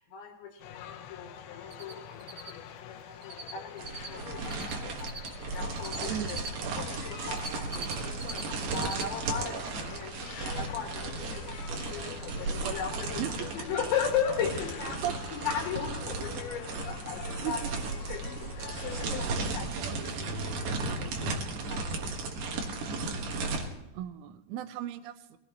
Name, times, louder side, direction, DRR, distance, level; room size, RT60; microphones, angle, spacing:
voice 1, 0.0-6.4 6.7-17.8 18.1-22.2, left 8 dB, 70° left, 3 dB, 3.7 m, -37 dB
sound 1, 0.6-19.1, left 9 dB, 85° left, 3.6 m, -46 dB
Cricket, 1.7-1.9 2.2-3.5 3.8-6.5 7.0-8.4 8.7-9.0 9.4-9.5 12.0-12.1 12.5-12.6 12.7-12.8, right 3 dB, 35° right, 2.0 m, -41 dB
sound 2, 3.8-23.7, right 3 dB, 65° right, 2.1 m, -35 dB
voice 2, 23.9-25.4, right 12 dB, 80° right, 10 dB, 3.1 m, -36 dB
22.0 x 17.0 x 3.0 m, 0.96 s
omnidirectional pair, 5.7 m